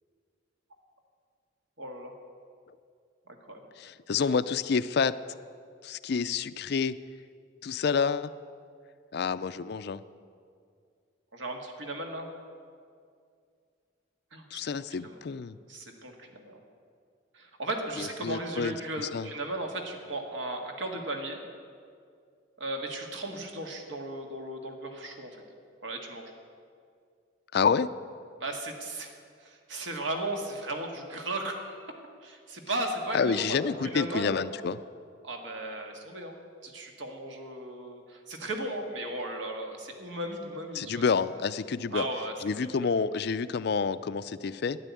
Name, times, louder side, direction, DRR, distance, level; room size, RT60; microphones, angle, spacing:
voice 1, 1.8-2.1 3.3-3.6 11.3-12.3 14.3-14.6 15.0-15.2 15.7-16.6 17.3-21.4 22.6-25.4 25.8-26.3 28.4-29.1 29.4-34.4 35.2-36.3 36.6-41.0 41.9-42.3, right 1 dB, 75° right, 3 dB, 1.8 m, -36 dB
voice 2, 3.8-5.1 5.8-7.0 7.6-8.3 9.1-10.0 14.5-15.6 18.0-18.8 19.1-19.3 27.5-27.9 33.1-34.8 40.7-42.0 42.4-44.8, left 5 dB, 55° left, 14 dB, 0.4 m, -28 dB
12.5 x 10.0 x 8.4 m, 2.2 s
head